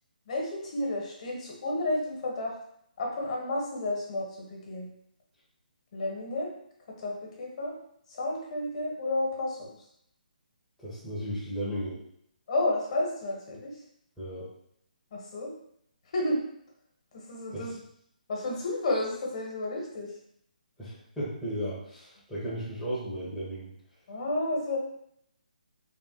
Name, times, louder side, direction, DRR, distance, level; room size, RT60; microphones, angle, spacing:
voice 1, 0.3-2.5 3.0-4.9 5.9-6.5 7.0-7.7 8.1-9.7 12.5-13.7 15.1-15.5 16.1-16.4 17.1-17.8 18.3-20.1 24.1-24.8, left 2 dB, 45° left, -1 dB, 1.1 m, -31 dB
voice 2, 10.8-12.0 14.2-14.5 17.5-17.8 20.8-23.7, equal, ahead, -12 dB, 0.7 m, -35 dB
3.5 x 2.1 x 3.8 m, 0.72 s
hypercardioid pair, 165°, 5 cm